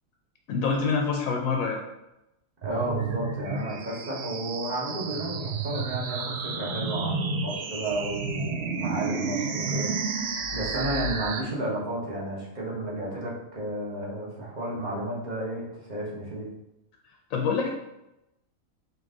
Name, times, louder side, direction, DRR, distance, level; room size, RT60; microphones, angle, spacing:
voice 1, 0.5-1.8 17.3-17.7, left 5 dB, 80° left, 1 dB, 1.0 m, -26 dB
voice 2, 2.6-16.5, right 1 dB, 35° right, -5 dB, 1.2 m, -32 dB
sound 1, 2.6-11.4, right 4 dB, 65° right, 0.7 m, -31 dB
4.7 x 2.6 x 3.7 m, 0.90 s
omnidirectional pair, 1.4 m